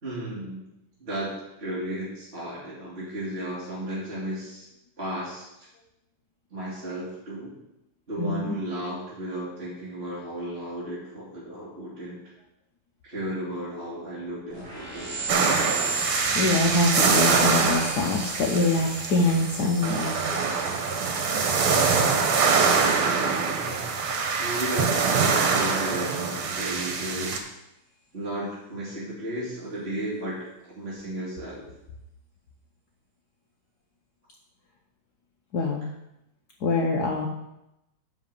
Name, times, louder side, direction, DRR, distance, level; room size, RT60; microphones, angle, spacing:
voice 1, 0.0-0.6 1.0-1.3 1.6-4.6 5.0-5.5 6.5-7.5 8.1-12.2 13.0-15.3 23.5-23.9 24.4-27.5 28.1-30.4 30.7-31.6, right 1 dB, 30° right, -9 dB, 2.6 m, -34 dB
voice 2, 8.2-8.6 16.3-20.2 35.5-35.9 36.6-37.3, left 2 dB, 60° left, 1 dB, 1.2 m, -24 dB
sound 1, 14.5-24.6, right 2 dB, 45° right, 2.8 m, -36 dB
sound 2, 15.3-27.4, right 5 dB, 85° right, 2.0 m, -24 dB
10.5 x 3.9 x 6.9 m, 0.87 s
omnidirectional pair, 2.3 m